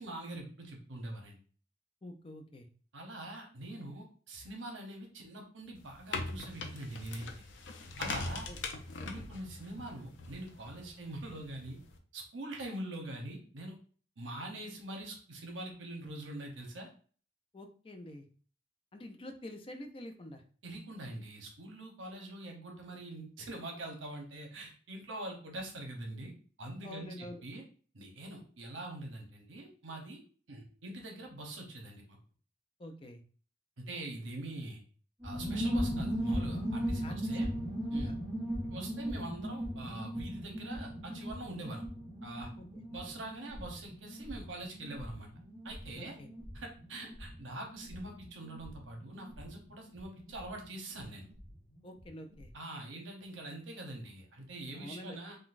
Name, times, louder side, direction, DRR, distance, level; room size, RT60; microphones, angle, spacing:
voice 1, 0.0-1.4 2.9-7.4 8.0-8.5 9.0-11.8 12.1-13.8 14.2-16.9 20.6-26.3 26.6-27.6 27.9-30.2 30.5-32.2 33.8-34.8 35.2-37.5 37.9-38.1 38.7-41.8 42.2-42.5 42.9-45.3 45.6-46.2 46.5-51.3 52.5-55.4, right 1 dB, 90° right, 2 dB, 0.8 m, -44 dB
voice 2, 2.0-2.7 8.5-8.6 9.0-9.3 17.5-18.3 18.9-20.4 26.8-27.4 32.8-33.2 37.0-37.3 38.0-38.1 42.7-42.8 46.0-46.3 51.8-52.5 54.7-55.2, left 1 dB, 30° left, 5 dB, 0.4 m, -47 dB
sound 1, 5.8-12.0, left 3 dB, 80° left, 0.5 m, -42 dB
sound 2, 35.2-51.5 51.8-51.9 52.1-52.5, equal, 5° right, 0.8 m, -38 dB
3.7 x 2.2 x 2.5 m, 0.42 s
head